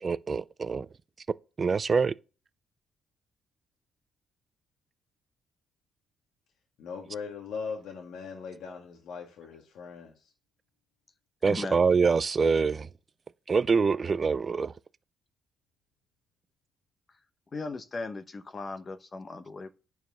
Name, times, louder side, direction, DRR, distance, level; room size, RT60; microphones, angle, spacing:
voice 1, 0.0-0.9 1.6-2.1 11.4-12.9 13.5-14.7, right 5 dB, 35° right, 0.4 m, -25 dB
voice 2, 6.8-10.3, left 5 dB, 80° left, 1.6 m, -40 dB
voice 3, 11.4-11.8 17.5-19.7, left 3 dB, 35° left, 0.9 m, -37 dB
9.2 x 4.7 x 5.7 m
cardioid pair, 90°, 0 cm